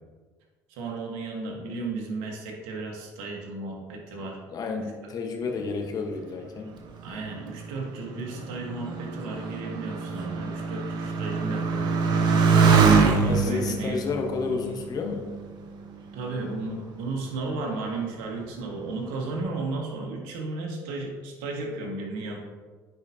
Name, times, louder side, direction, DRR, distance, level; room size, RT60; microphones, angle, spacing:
voice 1, 0.7-4.4 4.7-4.9 7.0-11.9 12.6-14.0 16.1-22.4, right 3 dB, 75° right, 0 dB, 1.5 m, -34 dB
voice 2, 4.5-6.7 13.3-15.3, left 4 dB, 50° left, 2 dB, 1.2 m, -31 dB
Motorcycle, 6.8-15.8 16.6-17.2, right 5 dB, 60° right, 0.9 m, -24 dB
9.7 x 4.9 x 2.8 m, 1.4 s
hypercardioid pair, 65°, 9 cm